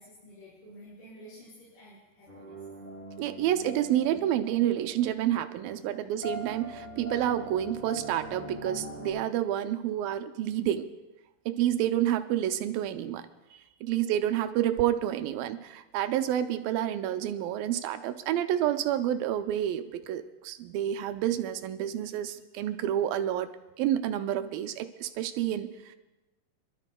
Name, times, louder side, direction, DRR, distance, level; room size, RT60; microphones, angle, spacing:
voice 1, 0.0-2.6 5.7-6.1 13.8-14.1, equal, 65° left, -11 dB, 6.1 m, -52 dB
sound 1, 2.3-9.1, right 1 dB, 5° left, 2.6 m, -43 dB
voice 2, 3.2-10.9 11.5-13.2 13.5-23.5 23.8-26.0, right 11 dB, 80° right, 8 dB, 2.3 m, -29 dB
29.0 x 12.5 x 2.2 m, 1.0 s
omnidirectional pair, 4.3 m